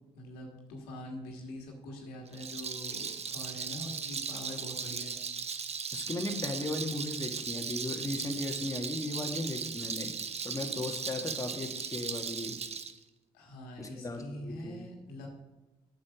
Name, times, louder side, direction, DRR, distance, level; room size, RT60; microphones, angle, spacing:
voice 1, 0.1-5.1 13.3-15.3, left 1 dB, 85° left, 1 dB, 1.7 m, -44 dB
Rattle, 2.3-12.9, right 6 dB, 45° right, 0.9 m, -37 dB
voice 2, 5.9-10.1 10.4-12.6 13.8-14.9, left 2 dB, 20° left, 2 dB, 1.7 m, -36 dB
8.6 x 6.7 x 6.1 m, 1.1 s
hypercardioid pair, 45°, 15 cm